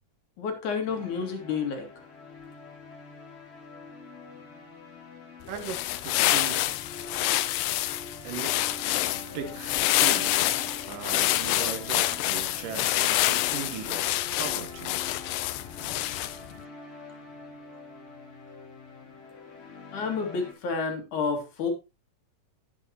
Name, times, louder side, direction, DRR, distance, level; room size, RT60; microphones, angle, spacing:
voice 1, 0.4-1.9 19.9-21.7, left 5 dB, 65° left, 3.7 m, -30 dB
sound 1, 0.9-20.5, left 4 dB, 40° left, 3.6 m, -45 dB
sound 2, 5.5-16.5, left 15 dB, 80° left, 2.2 m, -27 dB
voice 2, 6.0-6.7 8.2-8.6 9.3-14.1 14.3-15.0, right 8 dB, 80° right, 2.7 m, -38 dB
11.5 x 9.8 x 2.9 m
omnidirectional pair, 3.8 m